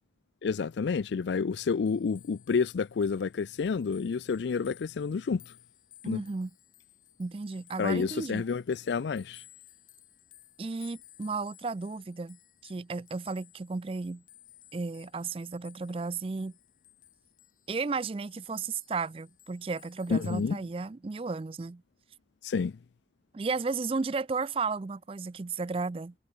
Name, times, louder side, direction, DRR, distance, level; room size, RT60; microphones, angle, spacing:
voice 1, 0.4-5.5 6.0-6.2 7.8-9.4 20.1-20.6 22.4-22.7, left 5 dB, 75° left, 0.4 m, -29 dB
sound 1, 1.7-20.5, left 13 dB, 45° left, 6.1 m, -58 dB
voice 2, 6.0-6.5 7.2-8.4 10.6-14.2 14.7-16.5 17.7-21.8 23.3-26.1, right 4 dB, 30° right, 0.4 m, -34 dB
head